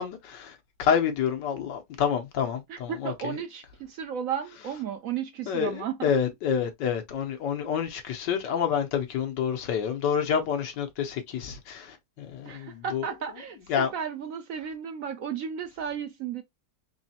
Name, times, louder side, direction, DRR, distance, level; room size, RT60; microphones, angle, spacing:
voice 1, 0.0-3.4 5.5-13.1 13.7-13.9, left 7 dB, 90° left, 1.6 m, -28 dB
voice 2, 2.7-6.1 12.5-16.4, right 8 dB, 70° right, 0.8 m, -34 dB
4.0 x 3.1 x 2.8 m
omnidirectional pair, 1.8 m